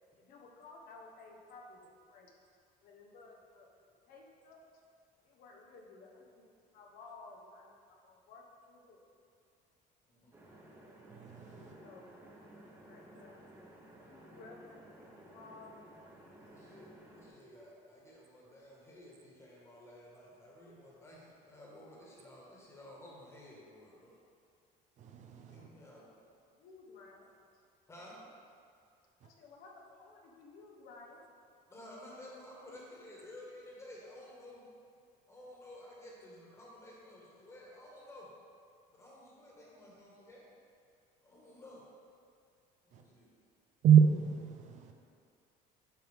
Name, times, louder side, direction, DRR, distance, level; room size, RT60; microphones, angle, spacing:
voice 1, 0.2-2.3 2.8-4.6 5.2-6.4 6.7-9.0 11.5-12.1 12.3-12.4 12.7-13.4 14.0-15.9 25.4-25.7 26.5-27.3 29.2-31.2, left 3 dB, 65° left, 1.1 m, -55 dB
voice 2, 10.1-10.4 16.3-24.1 25.5-26.1 27.9-28.2 31.7-34.7 35.3-38.3 38.9-40.5 41.2-41.8 42.9-43.3, left 1 dB, 15° left, 1.6 m, -53 dB
sound 1, 10.3-17.3, right 1 dB, 15° right, 1.2 m, -55 dB
voice 3, 11.1-11.8 25.0-25.7 29.2-29.3 42.9-43.0 43.8-44.9, right 8 dB, 50° right, 0.6 m, -27 dB
8.7 x 5.5 x 3.6 m
cardioid pair, 145°, 16 cm